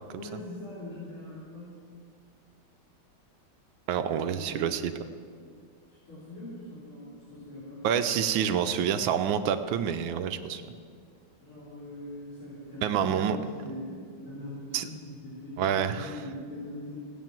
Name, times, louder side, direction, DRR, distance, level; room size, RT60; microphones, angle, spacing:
voice 1, 0.1-1.8 4.1-4.6 5.9-7.8 11.4-17.0, left 1 dB, 90° left, -11 dB, 4.5 m, -42 dB
voice 2, 3.9-4.9 7.8-10.6 12.8-13.4 14.7-14.9 15.6-16.1, right 8 dB, 75° right, 9 dB, 1.4 m, -27 dB
16.5 x 8.7 x 7.4 m, 2.1 s
omnidirectional pair, 2.2 m